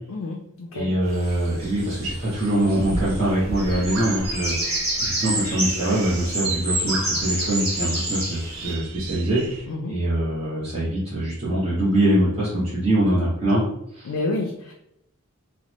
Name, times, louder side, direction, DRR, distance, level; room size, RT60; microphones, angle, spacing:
voice 1, 0.1-0.9 9.7-10.0 14.1-14.7, left 2 dB, 75° left, 1 dB, 0.4 m, -29 dB
voice 2, 0.7-4.5 5.0-9.6 9.9-13.6 13.9-14.1, right 1 dB, 30° right, -9 dB, 0.7 m, -23 dB
sound 1, 1.0-9.7, right 2 dB, 75° right, 0.3 m, -36 dB
sound 2, 1.2-3.2 3.5-8.7, right 1 dB, 45° right, 1.4 m, -28 dB
3.0 x 2.0 x 2.9 m, 0.76 s
head